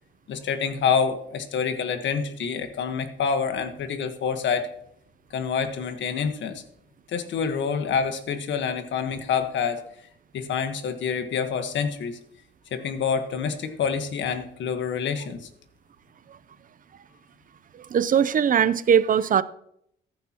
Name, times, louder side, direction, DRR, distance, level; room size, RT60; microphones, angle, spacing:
voice 1, 0.3-4.7 5.3-6.6 7.1-9.8 10.3-12.2 12.7-15.5, left 6 dB, 70° left, 1.3 m, -27 dB
voice 2, 17.7-19.4, right 8 dB, 45° right, 0.6 m, -20 dB
14.5 x 10.5 x 2.9 m
cardioid pair, 90°, 20 cm